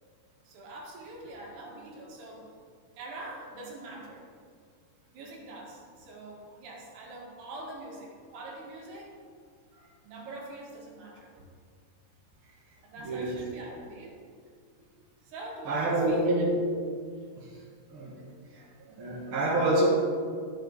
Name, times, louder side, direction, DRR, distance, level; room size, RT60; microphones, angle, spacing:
voice 1, 0.5-2.5 3.0-4.3 5.1-9.2 10.0-11.5 12.8-14.2 15.2-16.5, right 2 dB, 85° right, -2 dB, 3.8 m, -43 dB
voice 2, 13.0-13.5 15.7-16.6 17.4-17.5 17.9-18.2 18.5-19.9, right 1 dB, 50° right, -2 dB, 1.8 m, -27 dB
13.0 x 7.8 x 4.0 m, 2.1 s
omnidirectional pair, 4.5 m